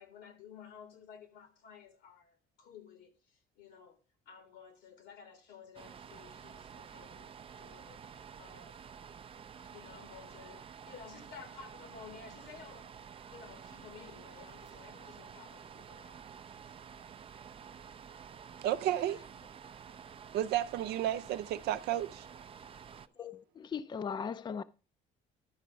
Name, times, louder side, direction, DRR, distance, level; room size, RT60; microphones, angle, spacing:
voice 1, 0.0-4.0 4.3-8.8 9.6-16.3 16.6-16.8, left 6 dB, 85° left, 2.0 m, -54 dB
sound 1, 5.7-23.1, right 7 dB, 35° right, 0.5 m, -50 dB
voice 2, 18.6-19.2 20.3-22.3, right 12 dB, 75° right, 0.6 m, -32 dB
voice 3, 23.2-24.6, left 6 dB, 25° left, 0.5 m, -38 dB
11.0 x 4.7 x 5.1 m
cardioid pair, 110°, 17 cm